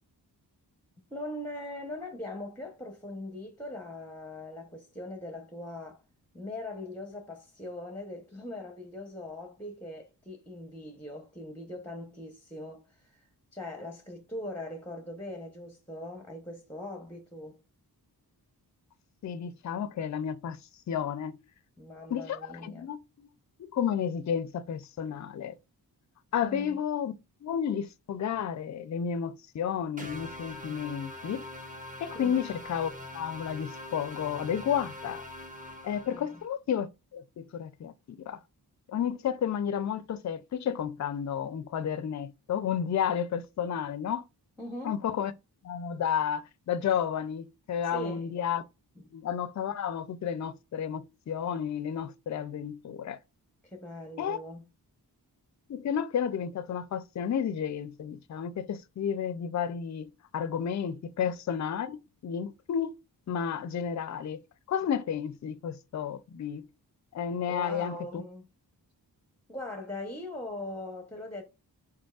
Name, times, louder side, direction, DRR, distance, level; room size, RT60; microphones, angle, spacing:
voice 1, 1.1-6.0 6.3-17.6 21.8-22.9 26.4-26.8 32.1-32.4 36.1-36.4 44.6-45.0 47.8-48.3 49.0-49.1 53.6-54.6 67.5-68.5 69.5-71.4, left 1 dB, 5° left, 0.8 m, -41 dB
voice 2, 19.2-20.6 20.9-21.4 22.1-23.3 23.6-25.6 26.3-27.1 27.4-31.4 32.0-35.2 35.8-36.9 37.1-37.9 38.3-38.4 38.9-44.2 44.8-45.3 45.6-48.6 49.1-53.2 54.2-54.4 55.7-62.9 63.3-64.4 64.7-66.7 67.1-68.2, left 8 dB, 45° left, 0.4 m, -32 dB
sound 1, 30.0-36.5, left 1 dB, 20° right, 1.0 m, -43 dB
5.2 x 4.0 x 2.3 m
wide cardioid pair, 100°, 40 cm